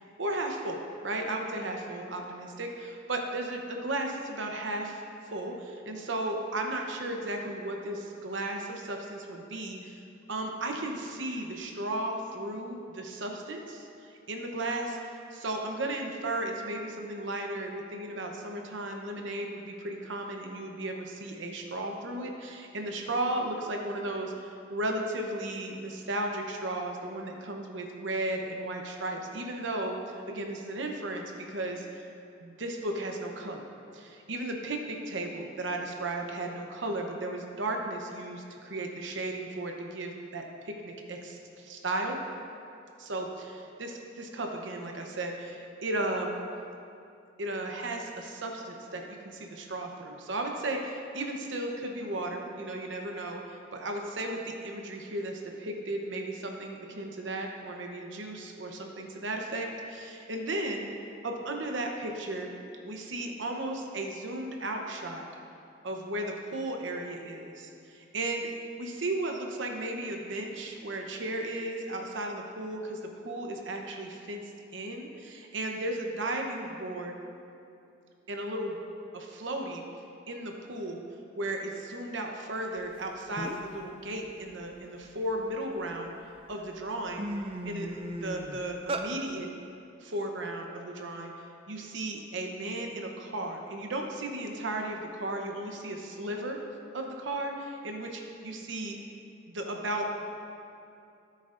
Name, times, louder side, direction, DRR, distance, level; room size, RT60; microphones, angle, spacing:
voice 1, 0.2-5.0 5.3-10.0 10.3-30.0 30.3-32.0 32.4-33.7 33.9-42.2 43.0-46.4 47.4-60.9 61.2-62.5 62.8-65.2 65.8-68.5 68.8-74.4 74.7-77.2 78.3-78.7 79.1-79.8 80.3-81.0 81.4-86.1 86.5-87.3 87.6-89.5 90.0-91.3 91.7-96.6 96.9-99.0 99.5-100.1, right 1 dB, 75° right, 2 dB, 0.9 m, -35 dB
sound 1, 83.0-83.1 83.4-83.8 84.2-85.8 86.4-86.5 86.8-89.1, right 1 dB, 30° right, 0.5 m, -36 dB
14.0 x 8.4 x 2.6 m, 2.6 s
head